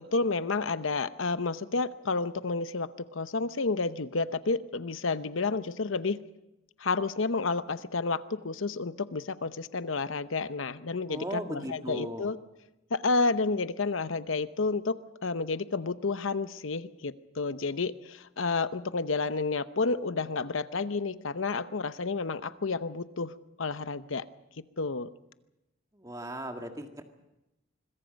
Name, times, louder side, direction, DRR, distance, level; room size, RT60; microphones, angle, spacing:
voice 1, 0.0-6.2 6.8-12.4 12.9-14.9 15.2-24.2 24.6-25.1, left 3 dB, 85° left, 13 dB, 0.9 m, -30 dB
voice 2, 11.1-12.3 25.9-27.0, right 1 dB, 15° right, 4 dB, 1.9 m, -37 dB
25.5 x 22.5 x 5.3 m, 0.95 s
head